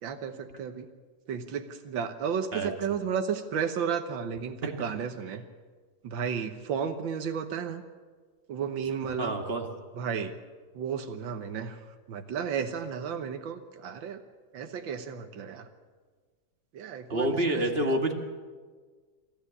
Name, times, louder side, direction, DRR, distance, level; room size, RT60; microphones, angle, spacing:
voice 1, 0.0-0.9 1.3-5.4 6.0-7.8 8.5-9.3 10.0-10.3 10.8-11.8 12.1-14.2 14.5-15.7 16.7-18.1, right 7 dB, 90° right, 7 dB, 1.8 m, -33 dB
voice 2, 9.2-9.7 17.1-18.1, right 1 dB, 30° right, 4 dB, 2.0 m, -27 dB
25.0 x 13.5 x 8.4 m, 1.5 s
omnidirectional pair, 2.0 m